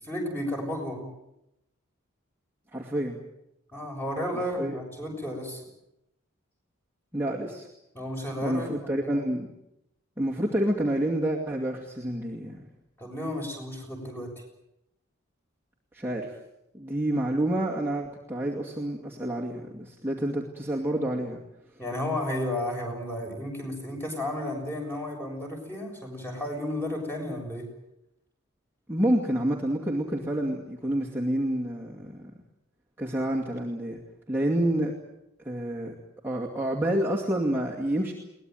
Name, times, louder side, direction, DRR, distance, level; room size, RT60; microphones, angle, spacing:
voice 1, 0.0-1.1 3.7-5.6 7.9-9.1 13.0-14.3 21.8-27.7, left 1 dB, 10° left, 1 dB, 6.7 m, -33 dB
voice 2, 2.7-3.2 4.6-4.8 7.1-7.7 8.4-9.5 10.2-12.7 15.9-16.4 16.7-21.4 28.9-32.3 33.0-34.0 34.3-34.9 35.4-36.0 36.2-38.1, right 1 dB, 10° right, -3 dB, 2.3 m, -28 dB
22.5 x 19.5 x 9.3 m, 0.84 s
head